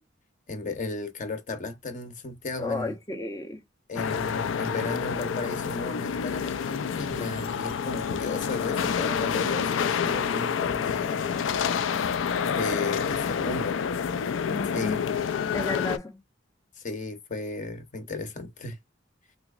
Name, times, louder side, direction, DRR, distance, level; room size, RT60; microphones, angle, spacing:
voice 1, 0.5-2.9 3.9-11.4 12.4-13.8 14.7-15.0 16.8-18.8, left 3 dB, 40° left, 0.8 m, -34 dB
voice 2, 2.6-3.6 14.5-15.0 15.5-16.2, left 2 dB, 15° left, 0.5 m, -33 dB
sound 1, 4.0-16.0, left 7 dB, 80° left, 0.4 m, -28 dB
3.4 x 3.0 x 2.4 m
head